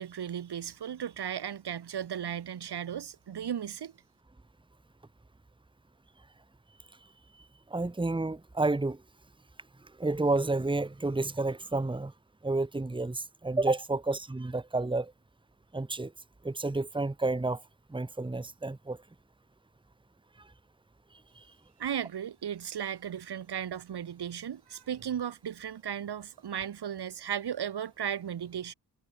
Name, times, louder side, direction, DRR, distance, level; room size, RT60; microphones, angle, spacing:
voice 1, 0.0-3.9 21.8-28.7, right 9 dB, 85° right, 3.7 m, -36 dB
voice 2, 7.7-9.0 10.0-12.1 12.4-15.1 15.7-16.1 16.4-17.6 17.9-19.0, right 2 dB, 10° right, 1.8 m, -30 dB
wide cardioid pair, 145°, 38 cm